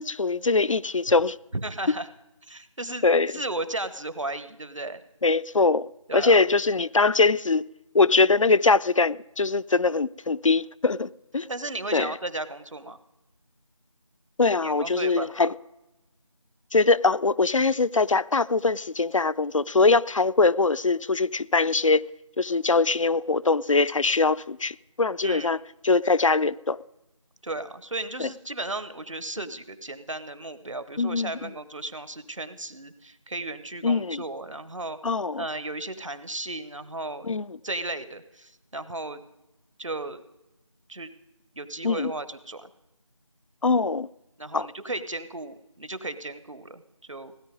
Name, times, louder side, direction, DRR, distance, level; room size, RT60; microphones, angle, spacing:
voice 1, 0.0-1.4 3.0-3.3 5.2-7.6 7.9-11.5 11.9-12.1 14.4-15.5 16.7-22.0 22.4-25.6 25.8-26.8 28.2-28.3 31.0-31.5 33.8-34.2 35.0-35.4 37.3-37.5 41.8-42.1 43.6-44.1 44.5-44.7, left 3 dB, 70° left, 0.4 m, -22 dB
voice 2, 1.5-2.1 2.5-5.0 6.1-6.5 11.5-13.0 14.6-15.5 25.2-25.5 27.4-37.3 37.6-39.2 39.8-40.2 40.9-41.1 41.6-42.7 44.4-47.3, right 2 dB, 70° right, 1.1 m, -35 dB
17.0 x 9.7 x 5.2 m
figure-of-eight pair, 175°, 17 cm